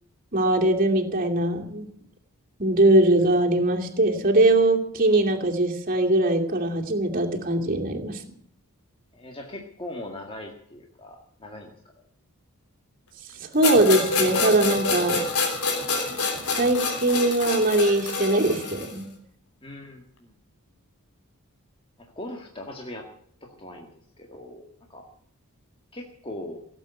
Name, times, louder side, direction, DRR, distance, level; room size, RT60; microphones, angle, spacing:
voice 1, 0.3-1.9 2.6-8.2 13.4-15.2 16.5-19.1, right 1 dB, 40° right, 1 dB, 2.6 m, -21 dB
voice 2, 9.1-11.7 19.6-20.3 22.0-23.1 23.4-23.9 24.2-25.1 25.9-26.6, left 1 dB, 25° left, 1 dB, 1.8 m, -40 dB
sound 1, 13.6-19.0, left 3 dB, 90° left, 3.5 m, -27 dB
18.0 x 8.3 x 9.8 m, 0.67 s
head